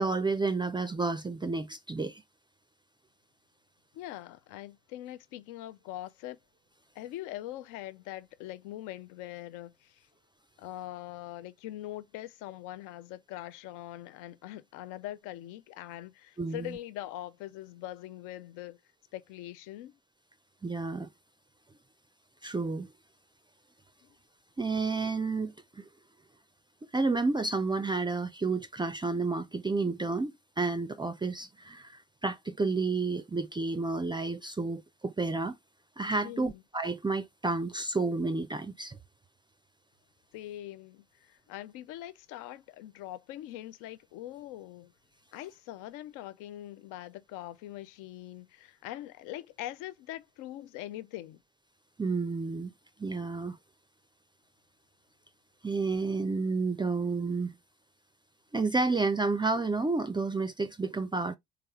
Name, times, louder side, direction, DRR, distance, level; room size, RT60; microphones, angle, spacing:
voice 1, 0.0-2.2 16.4-16.7 20.6-21.1 22.4-22.9 24.6-25.8 26.9-35.6 36.0-39.0 52.0-52.7 53.0-53.6 55.6-57.6 58.5-61.4, right 3 dB, 15° right, 0.4 m, -30 dB
voice 2, 3.9-6.4 7.0-10.1 10.6-18.8 19.1-19.9 24.0-24.1 36.2-36.6 40.3-44.9 45.3-51.4, left 14 dB, 70° left, 0.5 m, -42 dB
3.6 x 3.4 x 2.8 m
hypercardioid pair, 60°, 32 cm